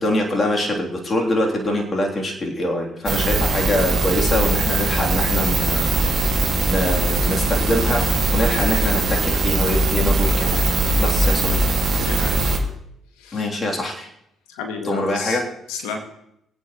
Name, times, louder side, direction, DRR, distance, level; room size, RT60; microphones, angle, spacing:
voice 1, 0.0-10.6 11.0-11.6 12.4-12.6 13.3-14.1 14.8-15.5, left 1 dB, 35° left, 0 dB, 3.3 m, -24 dB
sound 1, 3.1-12.6, right 2 dB, 50° right, 2.2 m, -20 dB
voice 2, 12.0-12.6 13.2-13.5 14.5-15.4 15.7-16.0, left 5 dB, 80° left, 4 dB, 1.9 m, -31 dB
23.5 x 8.8 x 3.2 m, 0.77 s
hypercardioid pair, 55°, 0 cm